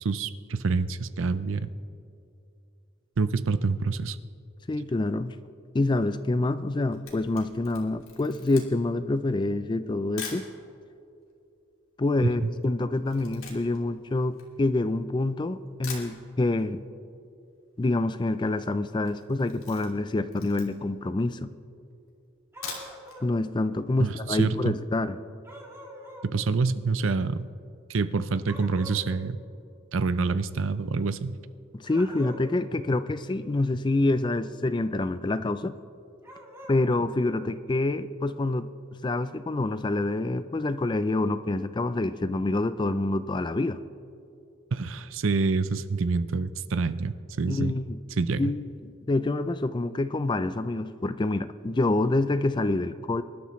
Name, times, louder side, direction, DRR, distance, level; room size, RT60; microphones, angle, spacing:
voice 1, 0.0-1.7 3.2-4.2 12.4-12.5 24.0-24.7 26.2-27.5 27.9-29.4 29.9-31.3 44.7-47.7 48.2-48.4, right 4 dB, 70° right, 13 dB, 0.5 m, -27 dB
voice 2, 4.7-5.3 5.7-10.5 12.0-16.8 17.8-21.5 23.2-25.2 31.7-35.8 36.7-38.7 39.0-43.8 47.5-48.0 48.4-53.2, left 2 dB, 20° left, 13 dB, 0.4 m, -27 dB
Camera, 6.9-10.5 11.2-11.3 11.5-15.1 15.5-15.6 15.8-16.7 17.0-17.1 17.4-17.5 17.6-18.1 18.4-18.6 19.0-21.0 21.5-21.6 22.4-23.2 23.6-23.7 24.0-24.1, left 5 dB, 85° left, 2.8 m, -43 dB
sound 1, 22.5-23.3 25.4-26.3 28.5-29.1 31.8-32.6 36.2-36.8, equal, 15° right, 1.7 m, -45 dB
25.0 x 12.0 x 3.2 m, 2.6 s
head